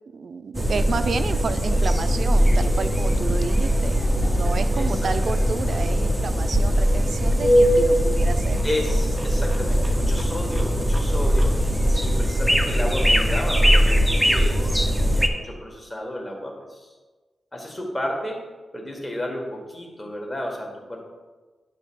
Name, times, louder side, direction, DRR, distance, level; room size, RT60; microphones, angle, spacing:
voice 1, 0.1-8.6 10.0-10.5, right 5 dB, 55° right, 11 dB, 0.4 m, -31 dB
sound 1, 0.5-15.3, equal, ahead, 0.6 m, -20 dB
voice 2, 0.7-1.1 4.8-5.1 8.6-11.5 12.0-16.9 17.5-18.4 18.7-21.1, left 1 dB, 20° left, 0 dB, 1.6 m, -32 dB
9.0 x 3.3 x 6.2 m, 1.3 s
wide cardioid pair, 130°, 0 cm